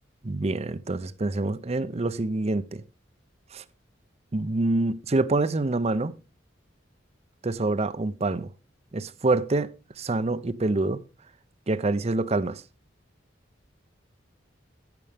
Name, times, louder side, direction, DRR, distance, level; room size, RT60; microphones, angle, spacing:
voice 1, 0.2-2.8 3.5-3.6 4.3-6.1 7.4-8.5 8.9-9.7 10.0-11.0 11.7-12.6, right 2 dB, 35° right, 0.6 m, -26 dB
10.5 x 9.8 x 3.5 m
head